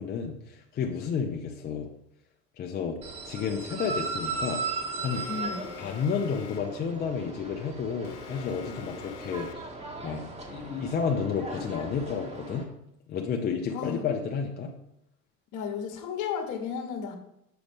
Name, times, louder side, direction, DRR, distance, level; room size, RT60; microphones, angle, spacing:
voice 1, 0.0-1.9 2.6-3.0 3.2-4.6 5.0-5.3 5.8-9.7 10.0-12.7 13.1-14.7, left 6 dB, 20° left, 2 dB, 0.5 m, -31 dB
sound 1, 3.0-12.6, right 4 dB, 15° right, 1.1 m, -37 dB
Alarm, 5.1-6.9 8.0-9.8, left 9 dB, 75° left, 0.6 m, -45 dB
voice 2, 5.3-5.7 13.7-14.0 15.5-17.2, left 7 dB, 40° left, 6 dB, 1.2 m, -33 dB
6.9 x 4.8 x 3.5 m, 0.80 s
figure-of-eight pair, 80°, 47 cm